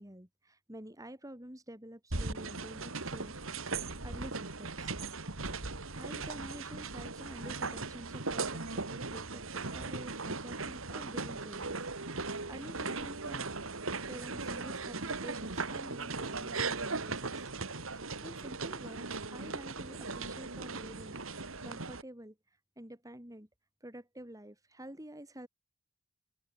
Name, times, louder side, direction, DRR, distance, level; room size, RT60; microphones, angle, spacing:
voice 1, 0.0-3.7 4.0-5.0 6.0-13.4 14.1-17.5 17.9-22.4 22.8-23.5 23.8-25.5, right 1 dB, 15° right, 5.6 m, -49 dB
sound 1, 2.1-22.0, right 3 dB, 65° right, 2.6 m, -38 dB
head